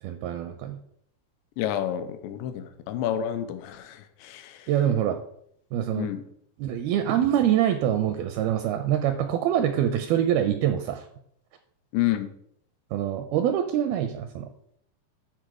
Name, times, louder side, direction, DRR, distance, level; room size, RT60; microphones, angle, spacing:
voice 1, 0.0-0.8 4.7-5.2 5.7-6.1 6.6-11.1 12.9-14.5, right 10 dB, 85° right, 7 dB, 2.2 m, -25 dB
voice 2, 1.6-4.7 6.0-6.2 11.9-12.3, left 11 dB, 90° left, 8 dB, 2.9 m, -29 dB
11.5 x 4.8 x 4.8 m, 0.69 s
omnidirectional pair, 4.9 m